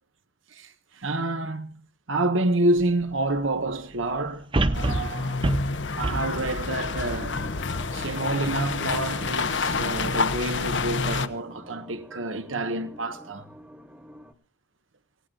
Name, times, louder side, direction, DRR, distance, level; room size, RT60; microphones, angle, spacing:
voice 1, 0.5-1.8 2.1-5.5 5.9-7.4 7.9-13.5, right 2 dB, 85° right, 1.5 m, -28 dB
sound 1, 2.8-2.9 4.5-7.9 8.4-8.5, right 2 dB, 25° right, 0.7 m, -28 dB
sound 2, 4.7-11.3, left 4 dB, 70° left, 1.0 m, -28 dB
sound 3, 7.1-14.3, equal, 10° right, 1.4 m, -46 dB
27.5 x 17.0 x 2.6 m
head